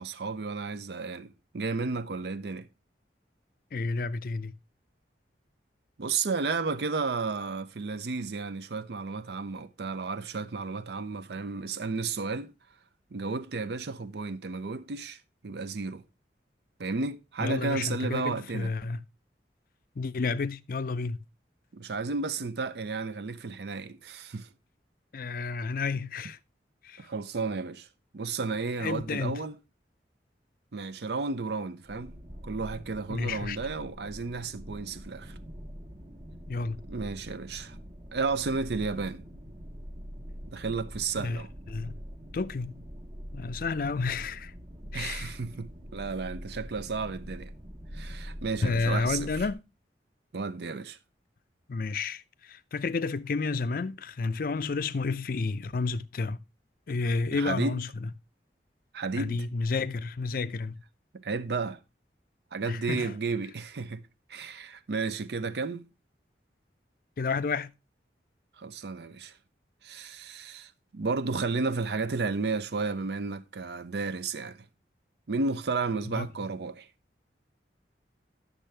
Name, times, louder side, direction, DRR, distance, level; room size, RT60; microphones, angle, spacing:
voice 1, 0.0-2.7 6.0-12.5 13.1-15.2 15.4-16.0 16.8-18.7 21.7-24.5 27.0-27.9 28.1-29.5 30.7-32.1 32.4-35.4 36.9-37.8 38.1-39.2 40.5-41.5 44.9-47.5 47.9-49.4 50.3-51.0 57.3-57.8 58.9-59.5 61.1-61.8 62.5-65.9 68.6-69.3 69.8-74.7 75.3-76.9, right 4 dB, 70° right, 0.5 m, -33 dB
voice 2, 3.7-4.5 17.4-19.0 20.0-21.2 25.1-26.4 26.8-27.1 28.8-29.4 33.1-33.6 36.5-36.8 41.2-41.4 41.7-41.9 42.3-42.8 43.3-44.5 44.9-45.3 48.6-49.6 51.7-56.4 56.9-57.9 59.2-60.8 62.7-63.1 67.2-67.7 76.1-76.3, left 4 dB, 50° left, 0.4 m, -31 dB
sound 1, 31.8-49.5, equal, 45° right, 1.1 m, -44 dB
10.5 x 6.6 x 3.2 m
head